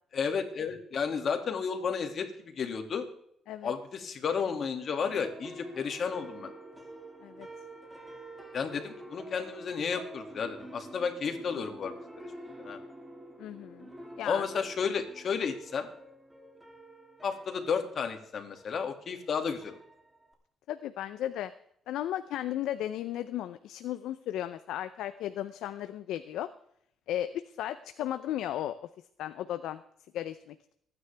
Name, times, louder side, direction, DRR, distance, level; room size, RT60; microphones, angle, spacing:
voice 1, 0.1-3.1 3.6-6.5 8.5-12.3 12.6-12.8 14.2-15.9 17.2-19.8, left 6 dB, 55° left, 6 dB, 2.2 m, -32 dB
sound 1, 4.7-20.3, right 1 dB, 15° right, 2.8 m, -48 dB
voice 2, 13.4-13.9 14.2-14.4 20.7-21.5 21.9-26.5 27.1-28.7 29.2-29.8 30.1-30.6, left 12 dB, 85° left, 11 dB, 0.6 m, -35 dB
24.5 x 9.7 x 3.4 m, 0.70 s
cardioid pair, 90°, 0 cm